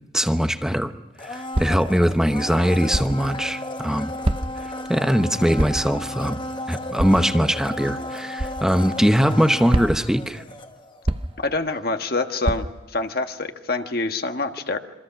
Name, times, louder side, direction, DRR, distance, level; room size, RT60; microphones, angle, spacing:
voice 1, 0.1-0.9 1.2-4.1 4.9-6.4 6.7-10.4, equal, 5° right, 9 dB, 0.9 m, -21 dB
Domestic sounds home sounds, 1.2-11.1 11.4-11.5, left 1 dB, 25° left, 1.2 m, -34 dB
sound 1, 1.5-1.9 2.9-3.3 4.2-4.7 5.6-5.9 7.0-7.3 8.4-8.6 9.7-10.2 11.0-11.5 12.4-12.9, right 1 dB, 30° right, 0.8 m, -25 dB
voice 2, 11.4-14.8, left 3 dB, 55° left, 6 dB, 1.5 m, -26 dB
27.5 x 24.5 x 5.9 m, 1.0 s
head